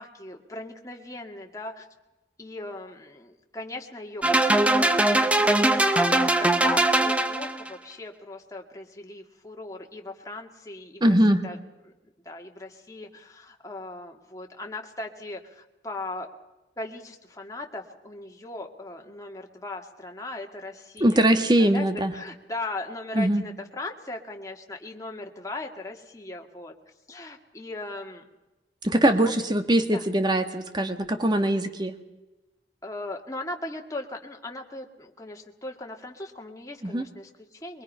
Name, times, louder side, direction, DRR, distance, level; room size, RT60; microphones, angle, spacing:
voice 1, 0.0-1.9 2.4-6.0 6.4-11.1 11.4-11.6 12.3-16.3 16.8-21.3 21.6-26.7 27.1-28.3 29.0-29.3 29.9-30.0 32.8-37.8, left 2 dB, 20° left, 2 dB, 2.0 m, -38 dB
sound 1, 4.2-7.7, right 1 dB, 5° right, 0.8 m, -21 dB
voice 2, 11.0-11.4 21.0-22.1 23.1-23.4 28.8-32.0 36.8-37.1, right 1 dB, 25° right, 7 dB, 1.6 m, -22 dB
23.0 x 22.5 x 5.6 m, 1.0 s
head